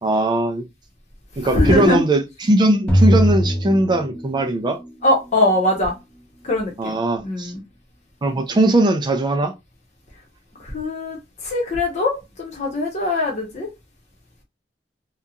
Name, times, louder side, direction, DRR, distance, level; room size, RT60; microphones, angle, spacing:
voice 1, 0.0-0.7 1.4-4.8 6.8-7.5 8.2-9.5, right 1 dB, 25° right, 0.4 m, -19 dB
voice 2, 1.5-2.0 5.0-5.9 6.4-7.0 7.2-7.6 10.6-13.7, left 2 dB, 40° left, 0.9 m, -21 dB
sound 1, 2.9-4.7, equal, 5° left, 0.7 m, -19 dB
2.8 x 2.3 x 2.3 m
head